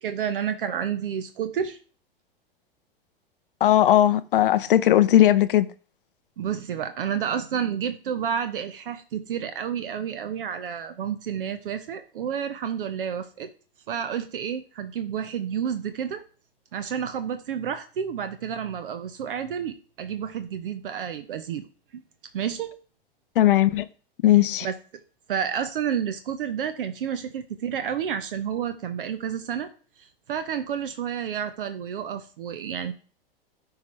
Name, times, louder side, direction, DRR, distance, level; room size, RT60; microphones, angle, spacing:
voice 1, 0.0-1.8 6.4-13.5 13.9-16.2 16.7-21.7 21.9-22.0 22.3-22.7 24.6-24.7 25.3-29.7 30.3-32.9, right 8 dB, 65° right, 0.9 m, -30 dB
voice 2, 3.6-5.7 23.4-23.9 24.2-24.7, left 12 dB, 65° left, 0.5 m, -18 dB
13.0 x 4.8 x 3.2 m
figure-of-eight pair, 95°, 29 cm